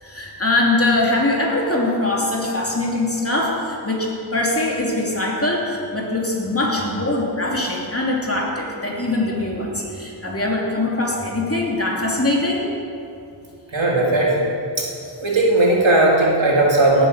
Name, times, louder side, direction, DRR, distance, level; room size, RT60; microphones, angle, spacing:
voice 1, 0.0-12.7, left 2 dB, 30° left, -2 dB, 3.0 m, -22 dB
voice 2, 13.7-14.5 14.8-14.9 15.2-17.1, right 2 dB, 75° right, -3 dB, 2.9 m, -17 dB
17.5 x 8.0 x 6.8 m, 2.6 s
wide cardioid pair, 50°, 46 cm